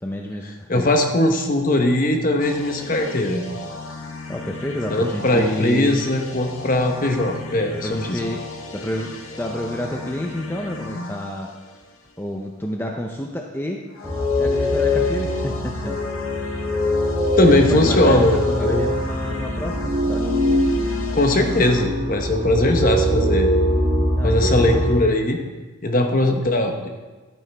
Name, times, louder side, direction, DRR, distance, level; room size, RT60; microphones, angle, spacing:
voice 1, 0.0-0.9 4.3-6.1 7.8-8.4 8.7-11.5 12.2-13.8 14.4-16.0 17.4-20.3 24.1-24.8, left 1 dB, 10° left, 1 dB, 0.5 m, -29 dB
voice 2, 0.7-3.4 4.9-8.2 17.4-18.9 21.1-23.5 24.2-25.4 25.8-26.9, left 1 dB, 40° left, 4 dB, 0.9 m, -19 dB
sound 1, 2.4-12.4 13.9-21.9, left 3 dB, 75° left, 0.9 m, -36 dB
sound 2, 14.0-25.0, left 1 dB, 10° right, 3.0 m, -22 dB
11.5 x 8.9 x 3.4 m, 1.3 s
head